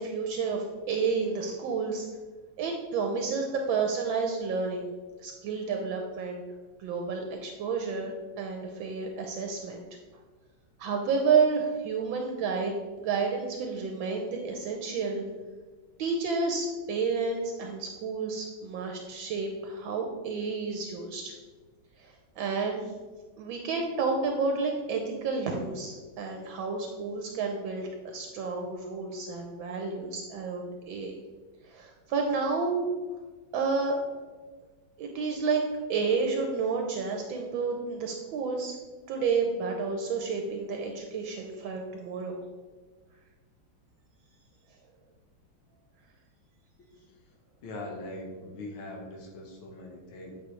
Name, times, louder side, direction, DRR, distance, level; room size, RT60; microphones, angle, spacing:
voice 1, 0.0-2.1 2.6-4.9 5.2-6.4 6.8-9.8 10.8-12.8 13.0-15.2 16.0-21.4 22.0-22.8 23.4-31.2 31.7-32.8 33.5-34.0 35.0-35.6 35.9-38.8 39.1-42.4, right 4 dB, 75° right, 2 dB, 1.4 m, -30 dB
voice 2, 47.6-50.4, left 1 dB, 75° left, 0 dB, 1.9 m, -41 dB
8.3 x 5.1 x 3.1 m, 1.4 s
omnidirectional pair, 2.3 m